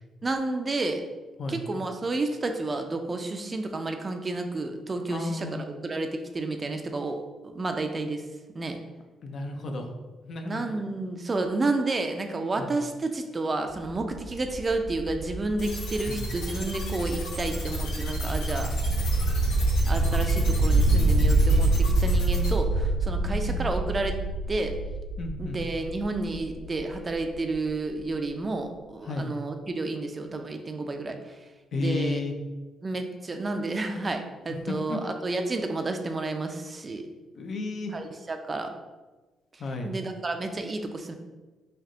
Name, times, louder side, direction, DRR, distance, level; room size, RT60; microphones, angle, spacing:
voice 1, 0.2-1.0 1.5-8.2 8.5-8.8 10.4-18.7 19.9-24.2 24.5-24.7 25.4-31.2 31.7-32.2 32.8-37.1 37.9-38.7 39.8-41.1, right 2 dB, 30° right, 5 dB, 0.4 m, -31 dB
voice 2, 5.1-5.7 9.2-9.9 10.2-10.6 12.6-12.8 16.1-16.3 23.3-23.7 25.2-25.6 29.0-29.3 31.7-32.4 34.7-35.0 37.3-38.0 39.6-40.0, left 2 dB, 55° left, 4 dB, 0.5 m, -33 dB
sound 1, 13.7-27.4, right 2 dB, 65° right, 0.7 m, -26 dB
sound 2, 15.6-22.5, left 3 dB, 85° left, 0.9 m, -39 dB
3.4 x 2.7 x 3.7 m, 1.2 s
cardioid pair, 90°, 0 cm